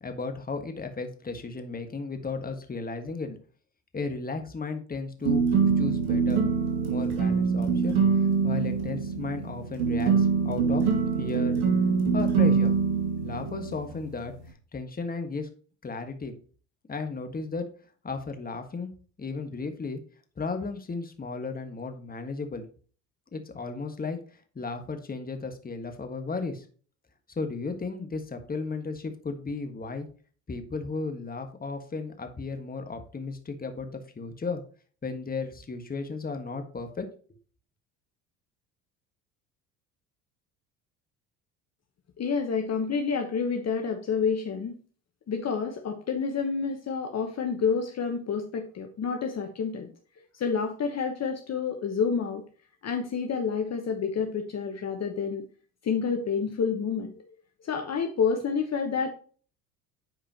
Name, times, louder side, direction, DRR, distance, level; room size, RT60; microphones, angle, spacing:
voice 1, 0.0-3.4 3.9-5.5 5.8-6.4 6.9-8.0 8.4-10.9 11.2-11.6 12.1-12.7 13.2-14.3 14.7-15.5 15.8-16.3 16.9-17.7 18.0-18.9 19.2-20.0 20.4-22.7 23.3-24.2 24.5-26.6 27.3-30.1 30.5-34.6 35.0-37.1, left 4 dB, 20° left, 6 dB, 1.5 m, -34 dB
sound 1, 5.2-14.5, right 5 dB, 70° right, 2.4 m, -25 dB
voice 2, 42.2-44.7 45.3-49.9 50.3-52.4 52.8-55.4 55.8-57.2 57.6-59.1, left 6 dB, 40° left, 4 dB, 1.1 m, -29 dB
9.1 x 4.8 x 2.9 m, 0.42 s
hypercardioid pair, 65°, 40 cm